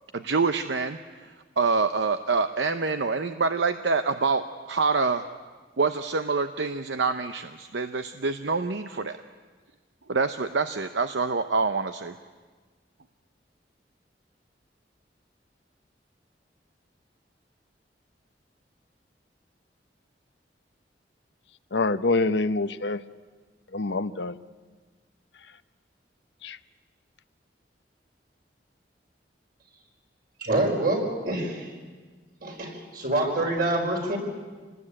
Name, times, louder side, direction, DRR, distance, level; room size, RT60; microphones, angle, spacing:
voice 1, 0.1-5.2 5.8-9.2 10.1-12.1, right 4 dB, 90° right, 9 dB, 0.8 m, -26 dB
voice 2, 21.7-23.0 23.7-24.4 26.4-26.6, left 3 dB, 75° left, 12 dB, 0.8 m, -25 dB
voice 3, 30.4-31.7 32.4-34.2, right 2 dB, 55° right, 1 dB, 5.1 m, -26 dB
27.0 x 19.5 x 8.7 m, 1.4 s
head